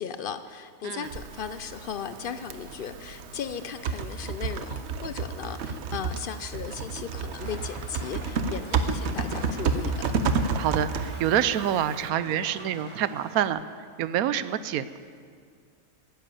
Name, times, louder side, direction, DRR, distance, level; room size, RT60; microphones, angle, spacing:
voice 1, 0.0-10.1, left 7 dB, 65° left, 11 dB, 0.5 m, -36 dB
Typing, 1.0-12.1, right 5 dB, 55° right, 0.9 m, -31 dB
Rain, 7.4-13.5, equal, 20° right, 2.4 m, -46 dB
voice 2, 10.6-13.6 14.0-15.0, right 10 dB, 80° right, 14 dB, 1.1 m, -27 dB
12.5 x 10.5 x 8.5 m, 2.1 s
omnidirectional pair, 1.5 m